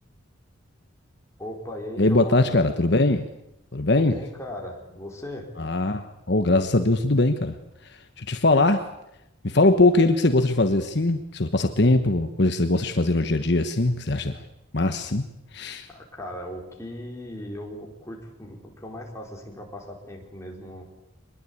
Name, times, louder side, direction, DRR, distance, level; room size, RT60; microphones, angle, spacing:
voice 1, 1.4-2.6 4.0-5.5 15.9-20.8, left 1 dB, 15° left, -1 dB, 4.6 m, -38 dB
voice 2, 2.0-3.3 3.7-4.1 5.6-7.5 7.8-8.9 9.4-14.3 14.7-15.2 15.5-15.9, left 2 dB, 55° left, 7 dB, 1.2 m, -21 dB
23.5 x 21.0 x 8.6 m, 0.85 s
head